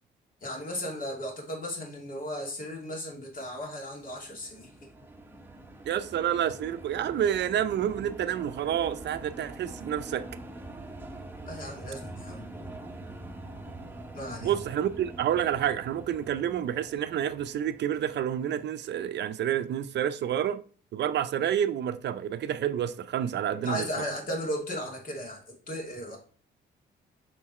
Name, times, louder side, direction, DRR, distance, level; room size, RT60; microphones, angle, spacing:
voice 1, 0.4-4.7 11.5-12.5 14.1-14.6 23.5-26.2, equal, 45° left, 2.6 m, -36 dB
sound 1, 4.0-18.4, right 2 dB, 10° right, 1.0 m, -44 dB
voice 2, 5.9-10.2 14.4-20.6 20.9-24.0, right 10 dB, 60° right, 0.5 m, -29 dB
7.0 x 3.9 x 4.2 m
cardioid pair, 90°, 20 cm